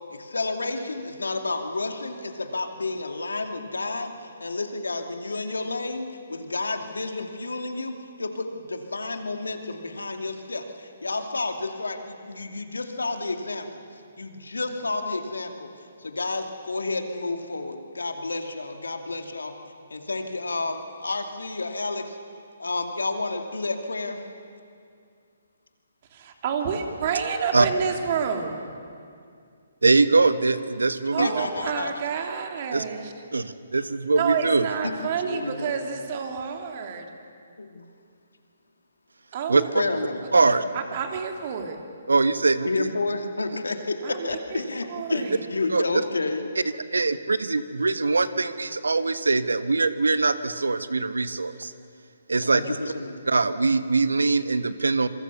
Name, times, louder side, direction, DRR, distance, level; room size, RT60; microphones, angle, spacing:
voice 1, 0.1-4.1 4.4-13.8 14.2-15.7 16.0-19.5 19.9-22.2 22.6-24.2 31.2-31.9 34.3-34.5 34.8-34.9 35.2-35.7 37.6-37.8 39.7-40.2 42.6-46.5 52.4-53.2, left 3 dB, 85° left, 5 dB, 2.5 m, -30 dB
voice 2, 26.1-28.7 31.1-33.1 34.2-37.1 39.3-39.7 40.3-41.8 44.0-44.6 44.9-45.4, right 6 dB, 45° right, 4 dB, 3.0 m, -29 dB
voice 3, 29.8-31.3 32.7-32.8 33.3-34.7 39.5-39.6 40.3-40.6 42.1-42.9 45.7-45.8 46.9-51.7 52.3-52.6 53.3-55.1, right 3 dB, 85° right, 12 dB, 1.2 m, -22 dB
27.0 x 22.5 x 6.9 m, 2.4 s
hypercardioid pair, 140°, 0 cm